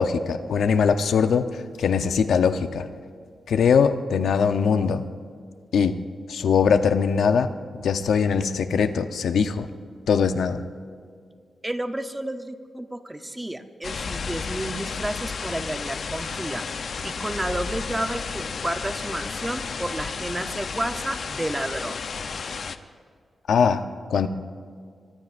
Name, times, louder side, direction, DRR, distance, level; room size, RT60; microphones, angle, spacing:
voice 1, 0.0-2.9 3.5-5.0 5.7-6.0 6.3-9.7 10.1-10.6 23.5-24.3, left 6 dB, 85° left, 8 dB, 0.8 m, -21 dB
voice 2, 11.6-16.7 17.0-22.0, right 1 dB, 10° right, 7 dB, 0.7 m, -31 dB
sound 1, 13.8-22.8, left 5 dB, 50° left, 0.6 m, -32 dB
23.5 x 23.0 x 2.6 m, 2.1 s
wide cardioid pair, 155°, 0 cm